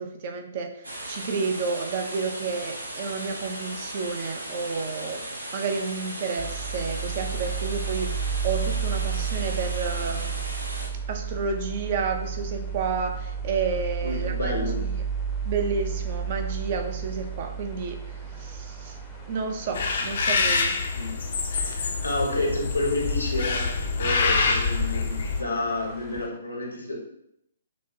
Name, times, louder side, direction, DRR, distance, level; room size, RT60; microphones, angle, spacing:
voice 1, 0.0-5.2 5.5-10.3 11.1-15.0 15.4-18.0 18.3-19.0 19.3-20.8, right 4 dB, 40° right, 5 dB, 0.5 m, -31 dB
sound 1, 0.8-10.9, right 1 dB, 80° right, 0.8 m, -37 dB
sound 2, 6.4-26.3, right 6 dB, 10° left, 0.6 m, -33 dB
voice 2, 14.0-14.9 20.9-21.2 21.6-27.0, left 2 dB, 85° left, 0 dB, 0.9 m, -30 dB
sound 3, 19.7-25.4, left 4 dB, 50° left, 0.5 m, -26 dB
6.1 x 2.1 x 2.7 m, 0.75 s
figure-of-eight pair, 125°, 0 cm